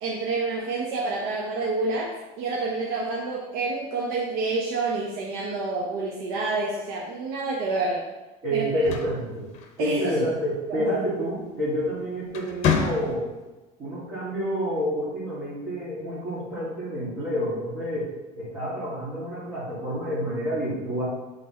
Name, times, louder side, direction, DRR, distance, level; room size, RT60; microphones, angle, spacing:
voice 1, 0.0-8.0 8.5-8.8 9.8-10.3 10.7-10.9, right 3 dB, 80° right, -3 dB, 1.1 m, -28 dB
voice 2, 8.4-9.5 9.8-13.3 13.8-21.0, equal, 30° right, -12 dB, 2.2 m, -28 dB
sound 1, 8.6-10.2 11.6-11.9 12.3-13.5, left 7 dB, 45° left, 0.9 m, -28 dB
7.9 x 3.8 x 3.8 m, 1.1 s
cardioid pair, 160°, 16 cm